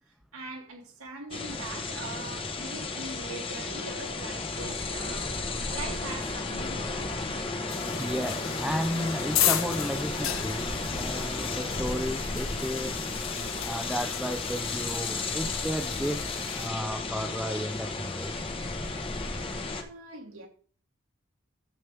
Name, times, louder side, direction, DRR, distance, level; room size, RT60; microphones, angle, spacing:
voice 1, 0.3-5.3 5.7-7.2 19.7-20.5, right 2 dB, 85° right, 2.8 m, -41 dB
sound 1, 1.3-19.8, left 3 dB, 25° left, 1.0 m, -33 dB
sound 2, 7.7-16.7, left 11 dB, 75° left, 1.0 m, -35 dB
voice 2, 7.9-13.0 13.6-16.2 16.5-18.5, equal, 5° right, 0.6 m, -33 dB
12.5 x 7.5 x 3.4 m
head